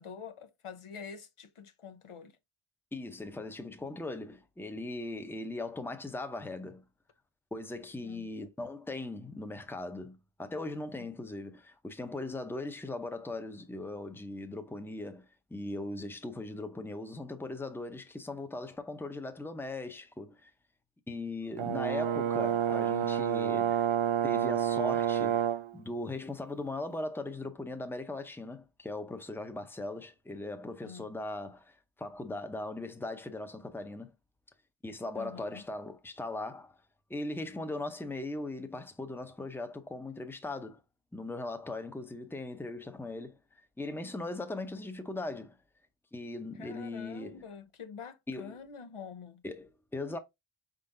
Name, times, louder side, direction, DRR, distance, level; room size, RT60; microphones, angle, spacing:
voice 1, 0.0-2.3 8.0-8.3 11.0-11.1 30.8-31.1 35.1-35.6 46.5-49.4, left 6 dB, 80° left, 0.9 m, -46 dB
voice 2, 2.9-6.8 7.5-20.5 21.1-23.9 24.2-25.5 25.7-34.1 34.8-36.8 37.1-40.8 41.1-43.4 43.8-45.6 46.1-47.4 48.3-48.6 49.4-50.2, left 2 dB, 5° left, 0.7 m, -39 dB
Brass instrument, 21.6-25.7, right 10 dB, 75° right, 0.6 m, -29 dB
4.6 x 3.9 x 2.6 m
wide cardioid pair, 60°, 50 cm